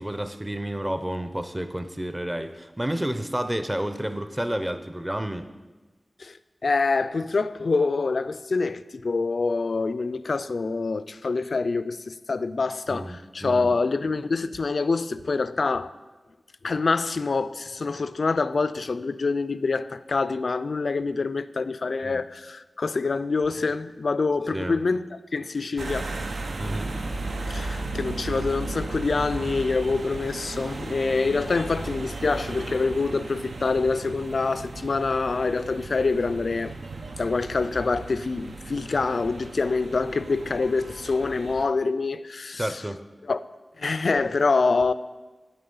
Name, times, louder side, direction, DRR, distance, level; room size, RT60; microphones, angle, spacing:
voice 1, 0.0-5.5 12.9-13.7 22.0-22.2 24.5-24.8 26.6-26.9 42.6-43.0, right 1 dB, 15° right, 0.6 m, -30 dB
voice 2, 6.6-15.9 16.6-25.1 25.3-26.1 27.5-36.7 37.2-42.8 43.2-43.4 43.8-44.9, left 4 dB, 70° left, 0.3 m, -26 dB
sound 1, 25.8-41.7, right 3 dB, 85° right, 0.7 m, -35 dB
8.4 x 7.7 x 5.5 m
wide cardioid pair, 75°, 0 cm